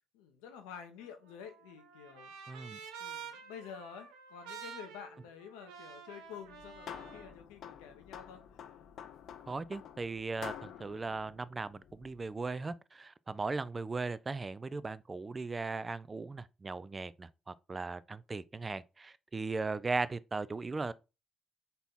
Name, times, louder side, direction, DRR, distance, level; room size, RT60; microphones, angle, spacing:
voice 1, 0.1-2.3 3.0-8.4, left 7 dB, 85° left, 0.8 m, -49 dB
Trumpet, 1.0-7.3, right 7 dB, 85° right, 0.7 m, -49 dB
voice 2, 2.5-2.8 9.5-20.9, right 3 dB, 30° right, 0.3 m, -38 dB
sound 1, 6.4-12.3, left 9 dB, 65° left, 0.4 m, -49 dB
4.0 x 2.8 x 3.7 m
hypercardioid pair, 55°, 0 cm